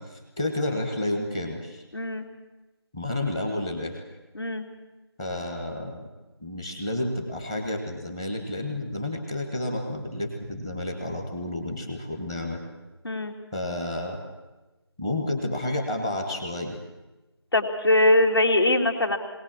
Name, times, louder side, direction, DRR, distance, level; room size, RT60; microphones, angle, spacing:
voice 1, 0.0-1.8 2.9-4.0 5.2-6.0 6.4-12.6 13.5-14.2 15.0-16.8, left 1 dB, 10° left, 3 dB, 1.1 m, -30 dB
voice 2, 1.9-2.3 4.3-4.6 13.0-13.3 17.5-19.2, left 1 dB, 65° left, 4 dB, 2.9 m, -22 dB
21.5 x 18.0 x 7.4 m, 1.1 s
figure-of-eight pair, 170°, 14 cm